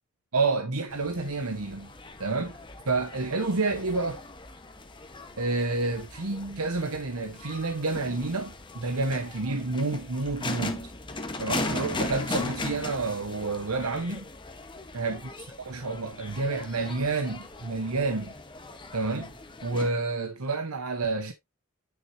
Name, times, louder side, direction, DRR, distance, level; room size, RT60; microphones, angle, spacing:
voice 1, 0.3-1.9 2.2-2.5 2.9-4.2 5.4-10.9 11.4-14.2 14.9-15.2 15.6-18.3 18.9-19.3 19.6-21.3, right 3 dB, 85° right, 1.1 m, -29 dB
sound 1, 0.9-19.9, left 2 dB, 20° left, 1.2 m, -38 dB
9.1 x 6.5 x 2.8 m
head